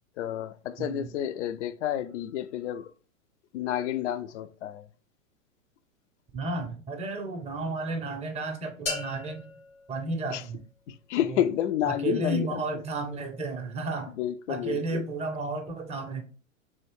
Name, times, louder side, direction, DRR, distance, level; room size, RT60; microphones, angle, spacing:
voice 1, 0.2-2.9 3.5-4.9 10.3-10.4 10.9-12.6 14.2-15.1, left 11 dB, 60° left, 0.5 m, -30 dB
voice 2, 0.8-1.1 6.3-9.5 9.9-10.6 11.3-11.4 11.9-14.1 14.5-16.2, right 3 dB, 15° right, 0.6 m, -33 dB
sound 1, 8.9-10.8, left 3 dB, 85° left, 2.2 m, -38 dB
3.4 x 3.0 x 4.5 m
hypercardioid pair, 115°, 41 cm